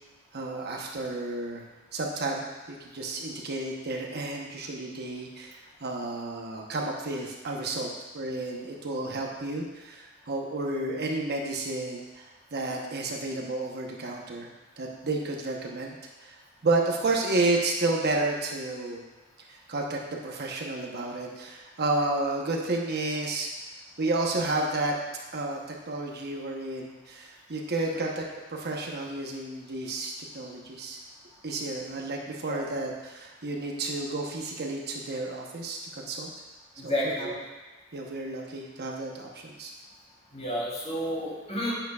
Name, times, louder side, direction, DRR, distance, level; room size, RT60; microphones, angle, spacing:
voice 1, 0.3-1.7 1.9-14.5 14.8-16.3 16.6-19.0 19.5-23.5 24.0-25.0 25.3-25.6 25.9-28.2 28.5-31.0 31.4-36.3 36.8-37.4 37.9-39.7, right 2 dB, 50° right, -1 dB, 1.0 m, -31 dB
voice 2, 36.8-37.3 40.3-41.7, equal, 30° left, -6 dB, 3.0 m, -30 dB
9.5 x 9.0 x 2.4 m, 1.2 s
head